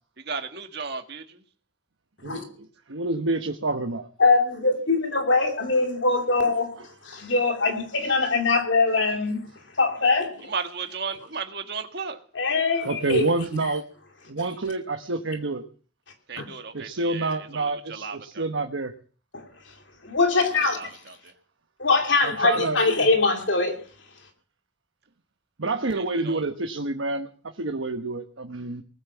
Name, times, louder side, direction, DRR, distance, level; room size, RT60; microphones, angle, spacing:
voice 1, 0.2-1.4 10.5-12.2 16.3-18.5 20.7-21.3 25.9-26.4, right 5 dB, 55° right, 1.7 m, -35 dB
voice 2, 2.2-4.1 12.8-13.8 14.3-15.6 16.7-18.9 22.2-22.8 25.6-27.3 27.6-28.8, right 2 dB, 85° right, 1.1 m, -28 dB
voice 3, 4.2-9.5 9.8-10.5 12.3-13.3 16.4-16.5 19.3-19.5 20.0-20.9 21.8-23.8, left 3 dB, 70° left, 2.6 m, -22 dB
19.5 x 9.2 x 7.2 m
head